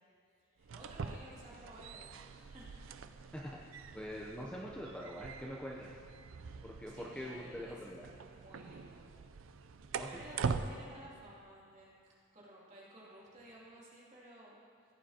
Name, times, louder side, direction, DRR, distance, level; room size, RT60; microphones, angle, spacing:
voice 1, 0.4-2.8 3.8-3.9 6.8-9.1 10.0-14.6, right 1 dB, 35° right, -7 dB, 2.6 m, -55 dB
sound 1, 0.6-10.7, right 5 dB, 85° right, 0.4 m, -43 dB
voice 2, 3.3-6.0 6.6-8.1 9.9-10.2, equal, 5° left, -3 dB, 0.6 m, -44 dB
15.5 x 9.0 x 2.9 m, 2.4 s
head